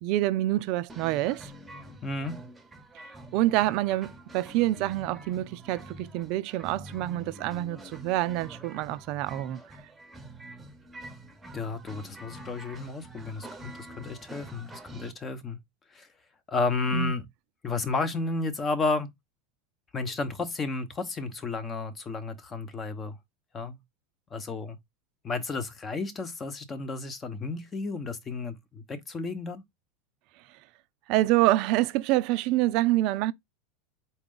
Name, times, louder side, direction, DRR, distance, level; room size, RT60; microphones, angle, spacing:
voice 1, 0.0-1.5 3.3-9.6 16.9-17.1 31.1-33.3, right 16 dB, 55° right, 0.4 m, -26 dB
sound 1, 0.9-15.1, right 1 dB, 10° right, 0.9 m, -46 dB
voice 2, 2.0-2.4 11.5-15.6 15.9-16.1 16.5-17.3 17.6-19.1 19.9-23.2 23.5-23.8 24.3-24.8 25.2-29.6, left 3 dB, 25° left, 0.9 m, -32 dB
4.2 x 2.3 x 3.8 m
supercardioid pair, 115°, 0 cm